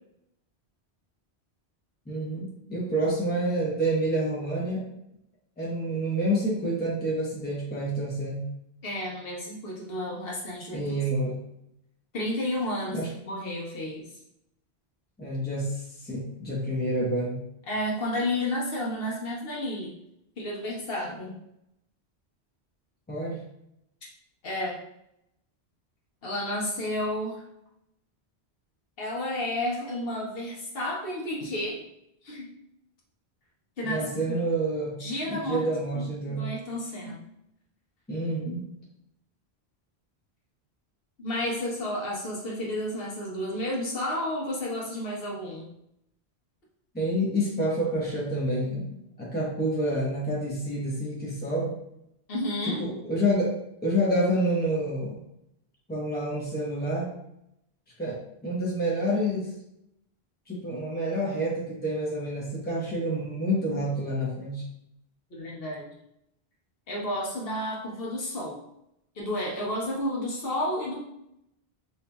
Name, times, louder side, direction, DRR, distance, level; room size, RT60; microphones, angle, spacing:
voice 1, 2.1-4.8 5.6-8.4 10.7-11.4 12.9-13.1 15.2-17.4 23.1-23.4 33.8-35.0 35.3-36.5 37.0-37.1 38.1-38.7 46.9-48.9 49.2-51.8 52.6-53.5 53.8-55.2 55.9-57.1 58.0-59.5 60.5-64.6, right 1 dB, 10° left, -5 dB, 0.8 m, -28 dB
voice 2, 8.8-10.9 12.1-13.0 13.2-14.0 17.7-19.9 20.4-21.4 24.4-24.8 26.2-27.4 29.0-31.8 32.2-32.5 33.8-34.3 35.0-35.7 35.9-37.2 41.2-45.7 52.3-52.8 65.3-65.9 66.9-68.6 69.2-71.0, left 1 dB, 65° left, -3 dB, 1.1 m, -31 dB
3.9 x 3.0 x 2.3 m, 0.79 s
omnidirectional pair, 1.1 m